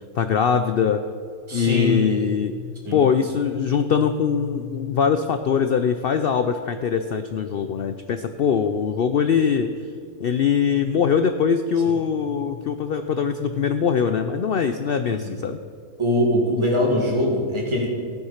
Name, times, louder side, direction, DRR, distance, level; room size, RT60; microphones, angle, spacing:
voice 1, 0.1-1.0 1.5-2.6 2.9-9.7 10.2-15.6, left 7 dB, 90° left, 9 dB, 0.5 m, -22 dB
voice 2, 1.5-2.1 2.9-3.0 11.9-12.0 15.1-15.3 16.0-17.9, left 1 dB, 20° right, -2 dB, 2.1 m, -22 dB
14.0 x 9.7 x 5.7 m, 2.2 s
omnidirectional pair, 1.6 m